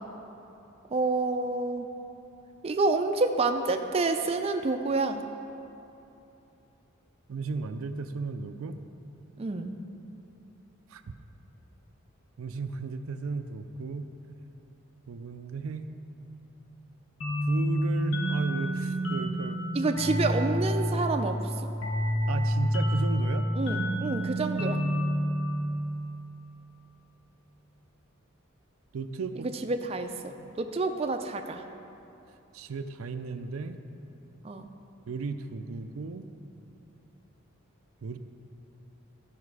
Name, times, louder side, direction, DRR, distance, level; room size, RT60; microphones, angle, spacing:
voice 1, 0.9-1.9 2.6-5.2 9.4-9.7 19.8-21.7 23.6-24.8 29.4-31.6 34.4-34.7, right 3 dB, 30° right, 5 dB, 0.4 m, -28 dB
voice 2, 7.3-8.8 10.9-11.1 12.4-14.1 15.1-15.9 17.5-19.6 22.3-23.5 28.9-29.5 32.5-33.8 35.1-36.3 38.0-38.2, right 4 dB, 90° right, 9 dB, 0.4 m, -35 dB
sound 1, 17.2-26.6, equal, 80° left, 1.2 m, -29 dB
12.5 x 5.3 x 4.8 m, 2.8 s
head